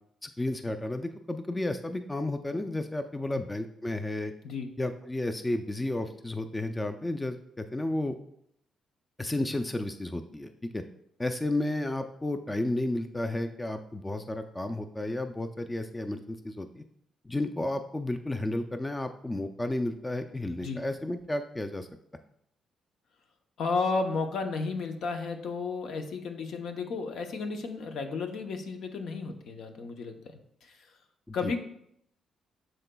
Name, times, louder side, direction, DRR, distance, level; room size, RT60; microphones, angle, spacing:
voice 1, 0.2-4.3 4.8-8.2 9.2-10.8 11.2-16.8 17.2-21.9 31.3-31.6, left 1 dB, 15° left, 7 dB, 0.4 m, -32 dB
voice 2, 23.6-30.8 31.3-31.6, left 4 dB, 70° left, 5 dB, 0.7 m, -33 dB
10.5 x 3.9 x 2.3 m, 0.73 s
cardioid pair, 90°, 0 cm